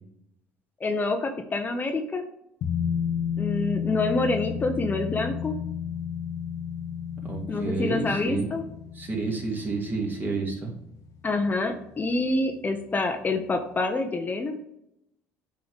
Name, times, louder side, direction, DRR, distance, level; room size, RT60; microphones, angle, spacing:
voice 1, 0.8-2.2 3.4-5.6 7.5-8.6 11.2-14.6, left 2 dB, 30° left, 6 dB, 0.8 m, -27 dB
sound 1, 2.6-11.7 12.0-12.1, left 8 dB, 60° left, 0.8 m, -32 dB
voice 2, 7.3-8.5 9.0-10.7, right 3 dB, 30° right, 0 dB, 2.2 m, -30 dB
8.4 x 3.8 x 3.5 m, 0.81 s
supercardioid pair, 75°, 6 cm